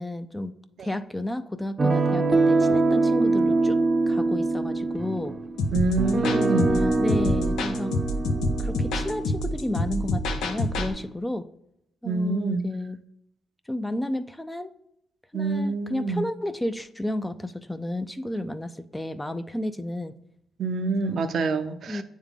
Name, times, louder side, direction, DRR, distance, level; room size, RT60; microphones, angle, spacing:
voice 1, 0.0-3.8 4.1-5.4 6.1-8.0 8.6-11.5 12.0-13.0 13.7-14.7 15.3-20.2 21.0-21.2 21.9-22.0, left 1 dB, 10° left, 0.5 m, -32 dB
sound 1, 1.8-11.0, right 3 dB, 25° right, 0.7 m, -24 dB
sound 2, 5.6-10.9, left 1 dB, 85° left, 0.9 m, -27 dB
voice 2, 5.7-6.8 12.0-12.7 15.3-16.2 20.6-22.0, right 3 dB, 60° right, 0.6 m, -26 dB
8.8 x 3.6 x 3.5 m
cardioid pair, 75°, 0 cm